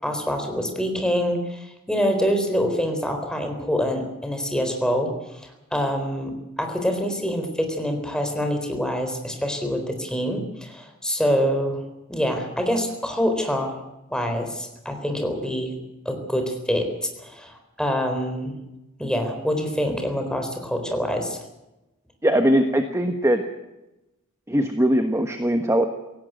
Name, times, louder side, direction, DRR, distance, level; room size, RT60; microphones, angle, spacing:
voice 1, 0.0-1.6 1.9-5.1 5.7-11.8 12.1-13.8 14.1-15.7 16.1-16.9 17.2-18.5 19.0-21.4, equal, 5° left, 4 dB, 4.0 m, -25 dB
voice 2, 22.2-23.4 24.5-25.8, equal, 15° right, 6 dB, 1.3 m, -20 dB
17.5 x 17.0 x 9.1 m, 0.95 s
head